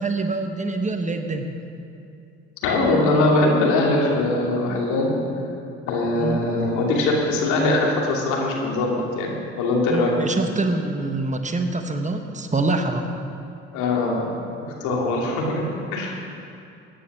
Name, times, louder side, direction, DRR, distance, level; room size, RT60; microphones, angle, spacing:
voice 1, 0.0-1.5 6.1-6.4 9.9-13.1, right 2 dB, 25° right, 5 dB, 1.3 m, -25 dB
voice 2, 2.6-5.1 5.9-10.1 13.7-14.3 14.6-15.6 15.9-16.2, left 2 dB, 70° left, -1 dB, 2.8 m, -21 dB
15.0 x 9.8 x 6.1 m, 2.6 s
hypercardioid pair, 60°, 31 cm